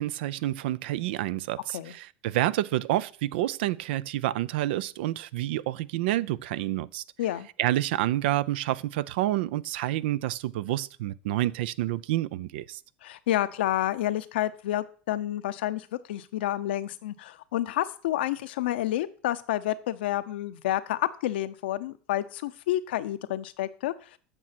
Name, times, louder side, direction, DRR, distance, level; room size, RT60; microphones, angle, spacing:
voice 1, 0.0-7.0 7.6-12.8, right 14 dB, 80° right, 0.4 m, -28 dB
voice 2, 13.0-24.2, left 13 dB, 85° left, 0.7 m, -29 dB
9.0 x 6.2 x 5.9 m
supercardioid pair, 100°, 6 cm